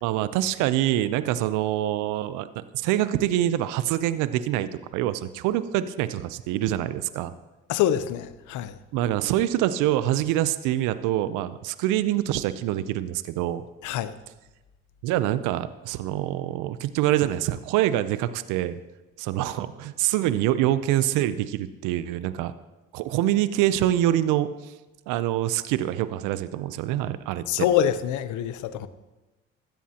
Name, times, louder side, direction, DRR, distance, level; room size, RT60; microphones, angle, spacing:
voice 1, 0.0-7.3 8.9-13.6 15.0-18.8 19.2-22.5 22.9-24.7 25.1-27.7, right 13 dB, 80° right, 0.6 m, -25 dB
voice 2, 7.7-8.8 13.8-14.1 27.5-28.9, left 10 dB, 75° left, 0.8 m, -25 dB
16.0 x 13.0 x 2.9 m
supercardioid pair, 55°, 30 cm